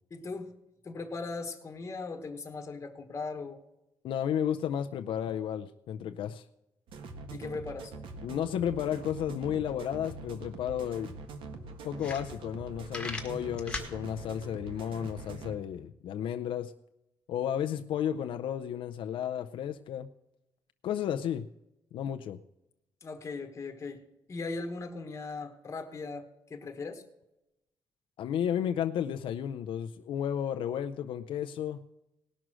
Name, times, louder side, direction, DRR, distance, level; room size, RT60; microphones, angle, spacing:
voice 1, 0.1-0.5 0.8-3.6 7.3-7.9 23.0-24.0 24.3-27.0, left 3 dB, 35° left, 4 dB, 1.3 m, -39 dB
voice 2, 4.0-6.4 8.2-11.2 11.8-16.7 17.3-20.1 20.8-21.5 21.9-22.4 28.2-31.8, left 9 dB, 85° left, 7 dB, 0.5 m, -33 dB
sound 1, 6.9-15.6, right 3 dB, 90° right, 1.5 m, -44 dB
sound 2, 11.6-11.7 11.9-12.6 12.9-13.9, left 2 dB, 10° left, 1.7 m, -38 dB
18.5 x 6.2 x 6.2 m, 0.90 s
cardioid pair, 130°, 9 cm